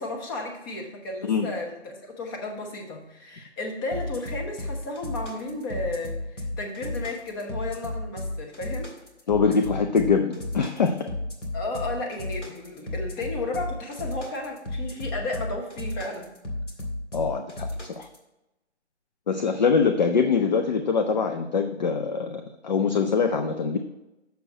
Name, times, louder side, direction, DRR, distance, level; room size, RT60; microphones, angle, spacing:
voice 1, 0.0-8.9 11.5-16.3, left 2 dB, 20° left, 2 dB, 1.0 m, -33 dB
sound 1, 3.9-18.2, left 1 dB, 85° left, 2.0 m, -33 dB
voice 2, 9.3-11.1 17.1-18.1 19.3-23.8, left 5 dB, 40° left, 6 dB, 0.5 m, -24 dB
6.7 x 4.5 x 6.3 m, 0.95 s
figure-of-eight pair, 140°, 35 cm